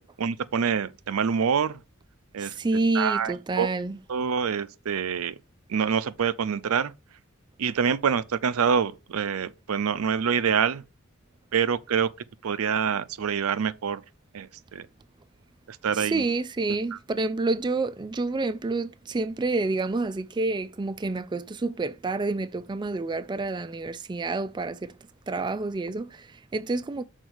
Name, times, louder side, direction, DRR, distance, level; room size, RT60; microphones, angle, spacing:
voice 1, 0.0-1.8 2.3-2.5 2.9-3.7 4.1-5.4 5.7-6.9 7.6-10.8 11.5-12.1 12.4-14.0 14.3-14.9 15.7-16.2 16.9-17.0, right 7 dB, 90° right, 0.5 m, -26 dB
voice 2, 2.4-4.0 15.9-24.9 25.3-27.0, right 3 dB, 20° right, 0.4 m, -28 dB
6.3 x 4.0 x 6.3 m
head